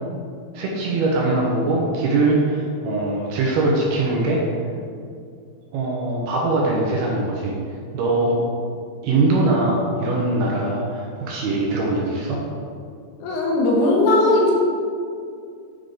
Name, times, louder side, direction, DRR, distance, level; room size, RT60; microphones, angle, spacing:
voice 1, 0.5-4.4 5.7-7.6 7.9-8.4 9.0-12.4, right 2 dB, 75° right, -3 dB, 2.5 m, -21 dB
voice 2, 13.2-14.5, left 2 dB, 75° left, -3 dB, 3.0 m, -18 dB
9.6 x 5.1 x 3.9 m, 2.3 s
omnidirectional pair, 5.2 m